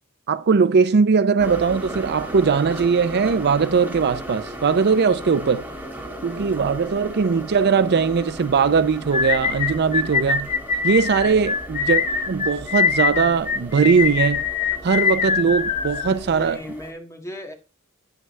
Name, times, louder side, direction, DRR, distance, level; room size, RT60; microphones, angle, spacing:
voice 1, 0.3-5.7 6.2-10.5 10.8-12.0 12.3-14.4 14.8-16.6, right 5 dB, 50° right, 0.5 m, -20 dB
sound 1, 1.4-16.9, right 1 dB, 10° right, 2.2 m, -37 dB
sound 2, 9.1-16.5, left 5 dB, 35° left, 1.4 m, -23 dB
voice 2, 16.1-17.5, equal, 15° left, 1.8 m, -37 dB
9.5 x 9.2 x 3.2 m
head